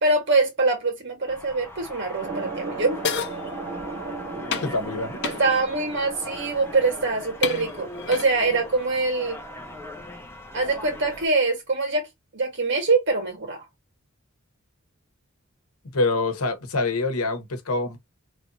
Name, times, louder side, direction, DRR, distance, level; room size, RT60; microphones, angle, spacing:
voice 1, 0.0-3.0 5.2-9.4 10.5-12.1 12.3-13.6, right 3 dB, 55° right, 1.8 m, -24 dB
sound 1, 1.3-11.3, left 1 dB, 10° left, 0.6 m, -40 dB
sound 2, 2.2-10.1, right 4 dB, 30° right, 0.9 m, -38 dB
sound 3, 3.0-3.4 4.5-4.8 5.2-5.4 6.6-6.7 7.4-8.3, left 6 dB, 55° left, 0.6 m, -29 dB
voice 2, 4.6-5.2 15.9-18.0, left 3 dB, 90° left, 1.0 m, -25 dB
3.2 x 2.6 x 4.0 m
head